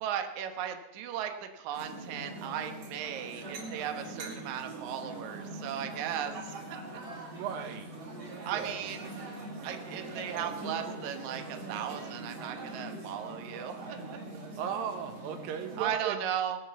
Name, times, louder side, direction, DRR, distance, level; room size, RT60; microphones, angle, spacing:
voice 1, 0.0-6.8 8.5-9.0 9.6-14.0 15.8-16.6, right 9 dB, 85° right, 6 dB, 1.6 m, -36 dB
sound 1, 1.7-15.8, right 2 dB, 35° right, 4.0 m, -42 dB
voice 2, 7.3-7.9 8.5-8.8 14.6-16.2, right 7 dB, 70° right, 7 dB, 2.4 m, -36 dB
20.5 x 6.9 x 7.0 m, 1.0 s
omnidirectional pair, 5.1 m